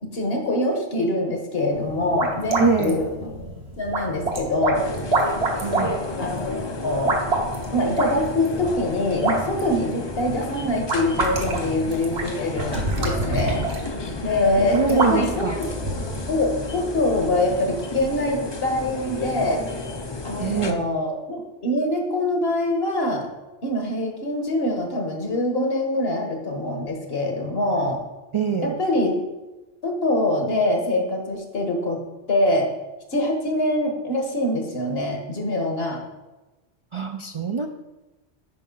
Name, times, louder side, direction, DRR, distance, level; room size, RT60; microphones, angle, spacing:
voice 1, 0.1-3.3 3.8-4.8 6.2-6.3 6.8-7.2 7.7-13.6 14.2-15.7 16.3-19.6 20.2-23.3 23.6-28.0 28.6-29.1 29.8-32.0 32.3-32.7 33.1-36.0, left 1 dB, 70° left, 2 dB, 1.6 m, -24 dB
sound 1, 1.7-16.3, right 2 dB, 75° right, 1.5 m, -28 dB
voice 2, 2.6-3.0 5.5-6.0 14.7-15.6 20.4-20.9 28.3-28.8 36.9-37.7, right 5 dB, 50° right, 5 dB, 0.3 m, -24 dB
sound 2, 4.7-20.7, left 3 dB, 30° left, 0.5 m, -32 dB
9.7 x 5.4 x 3.9 m, 1.1 s
omnidirectional pair, 1.1 m